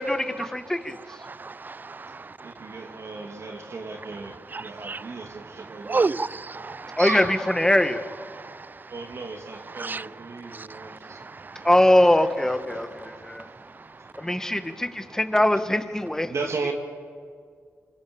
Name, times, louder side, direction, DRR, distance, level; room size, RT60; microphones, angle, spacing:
voice 1, 0.0-1.2 7.0-8.0 11.6-13.5 14.2-16.3, left 1 dB, 10° left, 1.8 m, -22 dB
voice 2, 1.1-2.8 4.5-7.0 8.3-8.9 9.7-11.7 12.7-14.5, right 4 dB, 35° right, 0.7 m, -34 dB
voice 3, 2.4-6.0 7.0-7.3 8.9-11.2 14.0-14.1 16.2-16.7, right 3 dB, 60° right, 2.9 m, -35 dB
26.5 x 25.0 x 7.2 m
cardioid pair, 60°, 5 cm